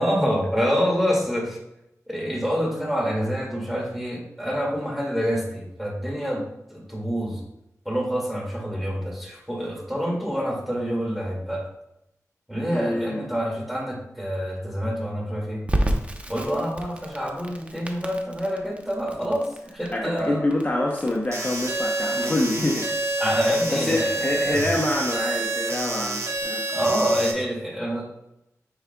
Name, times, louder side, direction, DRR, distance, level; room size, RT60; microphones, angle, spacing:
voice 1, 0.0-1.6 2.1-6.4 6.7-7.4 7.9-11.6 12.5-15.6 16.3-19.5 19.7-20.4 23.2-24.6 26.7-28.1, equal, ahead, -2 dB, 2.2 m, -26 dB
voice 2, 12.7-13.3 19.9-23.0 23.5-26.6, left 1 dB, 30° left, -1 dB, 0.8 m, -26 dB
Crackle, 15.7-26.4, right 1 dB, 20° right, 0.8 m, -33 dB
sound 1, 21.3-27.3, right 2 dB, 50° right, 1.4 m, -28 dB
9.6 x 4.9 x 2.3 m, 0.86 s
wide cardioid pair, 60°, 6 cm